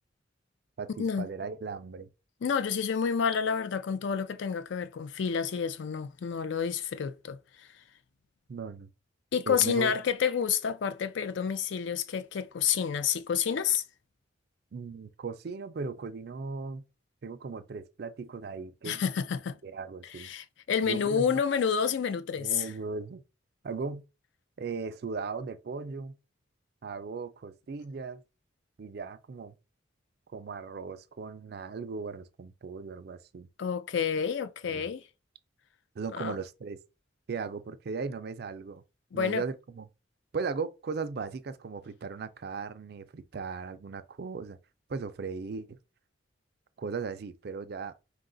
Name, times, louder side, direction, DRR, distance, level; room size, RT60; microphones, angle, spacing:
voice 1, 0.8-2.1 8.5-8.9 9.5-9.9 14.7-16.8 17.2-19.0 19.6-20.3 20.8-21.4 22.4-23.2 23.6-24.0 24.6-26.2 26.8-28.2 28.8-29.5 30.3-33.5 34.7-34.8 36.0-36.8 37.3-38.8 39.1-39.9 40.3-44.6 44.9-45.8 46.8-47.9, right 4 dB, 50° right, 0.4 m, -37 dB
voice 2, 2.4-7.7 9.3-13.8 18.8-19.6 20.2-22.7 33.6-35.0 36.1-36.4 39.1-39.4, left 7 dB, 65° left, 0.4 m, -29 dB
4.6 x 2.3 x 3.8 m
head